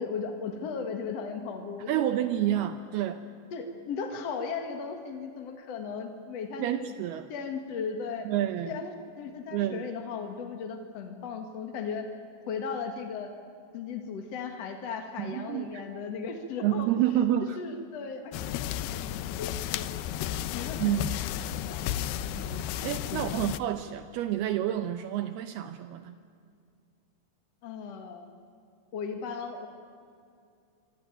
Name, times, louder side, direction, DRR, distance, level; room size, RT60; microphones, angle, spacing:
voice 1, 0.0-2.1 2.5-2.7 3.5-6.9 7.3-8.3 8.7-12.1 12.5-13.3 13.7-16.9 17.6-19.9 20.5-22.2 23.1-23.4 27.6-28.3 28.9-29.7, left 5 dB, 60° left, 5 dB, 1.7 m, -37 dB
voice 2, 1.9-3.2 6.6-7.3 8.3-8.8 9.5-9.9 15.2-15.8 16.6-17.6 20.8-21.1 22.3-26.2, right 12 dB, 85° right, 10 dB, 2.2 m, -29 dB
sound 1, 18.3-23.6, left 11 dB, 90° left, 2.2 m, -33 dB
26.0 x 25.0 x 9.0 m, 2.4 s
omnidirectional pair, 5.6 m